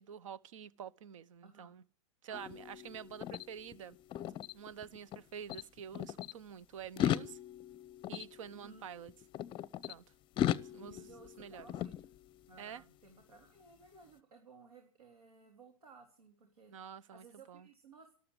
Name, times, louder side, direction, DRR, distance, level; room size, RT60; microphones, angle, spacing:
voice 1, 0.0-1.8 2.2-4.0 4.5-7.4 8.1-9.1 9.9-10.0 10.5-11.0 11.4-11.7 12.6-12.8 16.7-17.7, right 8 dB, 65° right, 1.0 m, -48 dB
voice 2, 1.4-1.7 2.3-2.5 8.5-8.9 10.8-12.1 12.5-18.1, right 4 dB, 80° right, 3.8 m, -58 dB
sound 1, 2.3-5.2 5.5-6.3 6.8-9.9 10.4-12.6, left 11 dB, 25° left, 0.6 m, -38 dB
13.0 x 12.5 x 8.1 m
hypercardioid pair, 105°, 18 cm